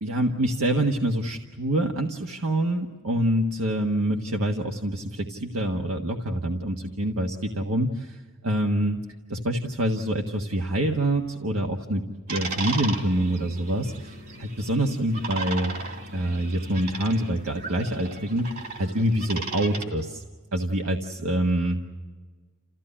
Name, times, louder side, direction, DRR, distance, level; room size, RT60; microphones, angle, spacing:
voice 1, 0.0-9.0 9.3-12.0 12.3-15.7 16.1-20.2 20.5-21.8, right 1 dB, 85° right, 2 dB, 1.5 m, -26 dB
sound 1, 12.3-19.8, right 3 dB, 45° right, 3.0 m, -36 dB
29.0 x 15.0 x 9.9 m, 1.4 s
head